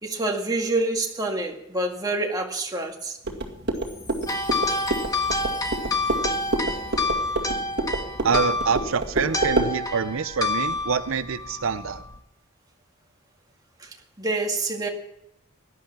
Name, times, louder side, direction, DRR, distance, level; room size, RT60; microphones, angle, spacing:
voice 1, 0.0-3.2 13.8-13.9 14.2-14.9, right 2 dB, 20° right, 1 dB, 1.9 m, -27 dB
sound 1, 3.2-9.7, right 2 dB, 55° right, 2.2 m, -28 dB
Chime, 3.7-8.0, left 3 dB, 60° left, 5.7 m, -50 dB
sound 2, 4.3-12.2, left 2 dB, 20° left, 1.3 m, -28 dB
voice 2, 8.2-12.0, right 6 dB, 75° right, 12 dB, 0.6 m, -26 dB
17.5 x 11.5 x 6.0 m, 0.83 s
head